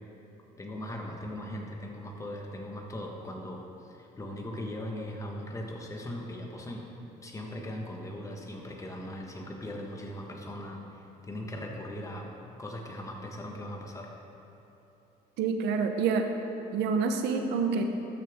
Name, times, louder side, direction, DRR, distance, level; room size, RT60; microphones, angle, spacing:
voice 1, 0.6-6.8 7.2-12.3 12.6-14.1, left 1 dB, 20° left, 0 dB, 1.3 m, -39 dB
voice 2, 15.4-16.3 16.7-17.8, right 5 dB, 85° right, 6 dB, 0.8 m, -27 dB
13.0 x 6.7 x 3.6 m, 3.0 s
cardioid pair, 110°, 17 cm